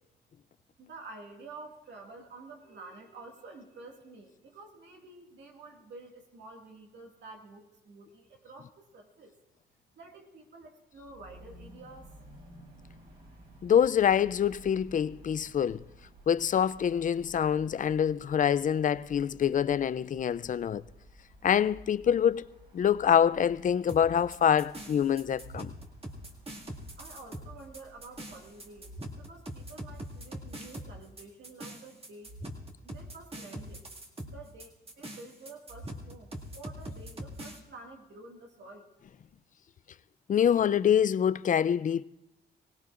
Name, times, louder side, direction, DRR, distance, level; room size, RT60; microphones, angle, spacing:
voice 1, 0.8-9.3 9.9-12.1 27.0-32.4 32.8-33.8 34.2-38.9, right 3 dB, 75° right, 2.1 m, -49 dB
sound 1, 10.9-29.2, right 1 dB, 55° right, 6.2 m, -55 dB
voice 2, 13.6-15.8 16.3-20.8 21.4-22.4 22.7-25.7 40.3-42.0, left 8 dB, 45° left, 0.4 m, -25 dB
sound 2, 23.9-37.6, right 1 dB, 30° right, 2.2 m, -43 dB
24.0 x 17.5 x 2.5 m
cardioid pair, 70°, 18 cm